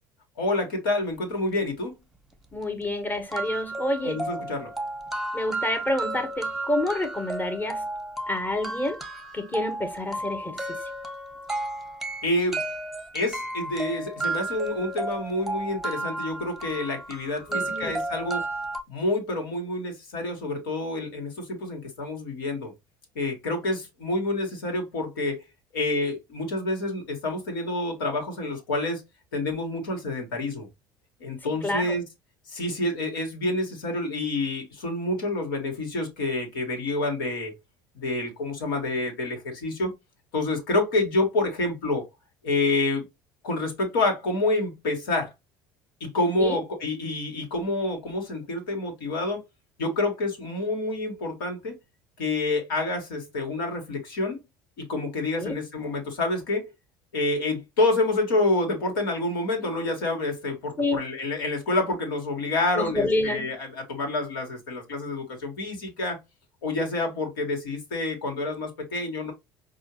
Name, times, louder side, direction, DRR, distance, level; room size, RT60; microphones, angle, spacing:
voice 1, 0.4-1.9 4.0-4.7 12.2-12.6 13.1-18.4 18.9-22.7 23.1-25.4 25.7-29.0 29.3-30.7 31.2-32.0 32.5-37.5 37.9-39.9 40.3-42.1 42.4-43.1 43.4-45.3 46.0-49.4 49.8-51.8 52.2-54.4 54.8-56.6 57.1-66.2 66.6-69.3, left 2 dB, 70° left, 1.5 m, -28 dB
sound 1, 2.3-2.4 2.8-2.9 3.3-18.8, right 2 dB, ahead, 1.2 m, -33 dB
voice 2, 2.5-4.2 5.3-7.8 8.3-9.0 9.3-10.6 17.5-17.9 31.4-32.0 46.4-46.6 55.4-55.5 60.8-61.0 62.8-63.6, left 1 dB, 15° left, 1.2 m, -28 dB
5.5 x 2.4 x 2.9 m
figure-of-eight pair, 60°, 12 cm